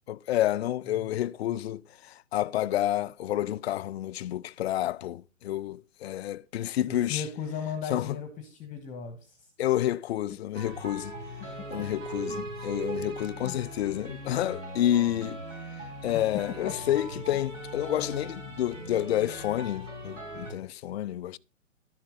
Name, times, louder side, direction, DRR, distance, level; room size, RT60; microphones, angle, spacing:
voice 1, 0.1-7.2 7.9-8.2 9.6-11.1 11.7-15.4 16.0-21.4, left 12 dB, 55° left, 0.5 m, -29 dB
voice 2, 6.9-9.5 12.3-12.5 13.4-13.6 16.1-16.7, left 7 dB, 20° left, 1.3 m, -37 dB
sound 1, 10.5-20.5, right 1 dB, 80° right, 4.9 m, -39 dB
11.5 x 7.2 x 3.7 m
figure-of-eight pair, 125°, 38 cm